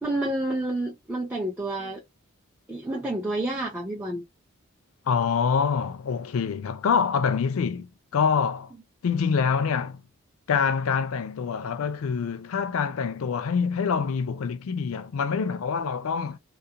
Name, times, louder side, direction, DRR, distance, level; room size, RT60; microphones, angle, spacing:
voice 1, 0.0-2.0 2.7-4.2, right 1 dB, 10° right, 0.4 m, -29 dB
voice 2, 5.1-8.7 9.0-10.0 10.5-16.4, left 6 dB, 70° left, 0.4 m, -25 dB
2.4 x 2.1 x 2.7 m
head